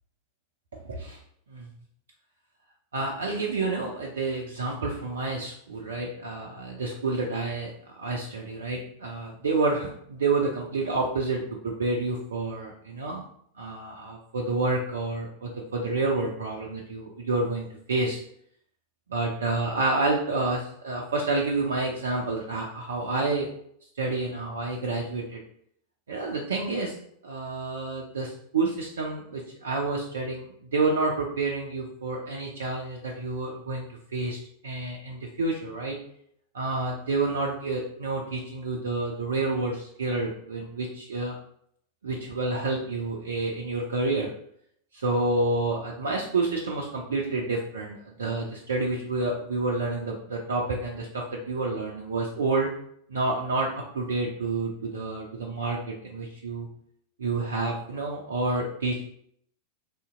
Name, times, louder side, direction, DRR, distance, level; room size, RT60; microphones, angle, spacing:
voice 1, 2.9-7.7 8.0-13.2 13.6-18.2 19.1-23.5 24.0-25.4 26.1-27.0 27.2-36.0 36.5-41.3 42.0-44.3 44.9-52.7 53.1-56.7 57.2-59.0, right 3 dB, 65° right, -1 dB, 0.5 m, -29 dB
2.8 x 2.7 x 3.5 m, 0.68 s
figure-of-eight pair, 90°, 0 cm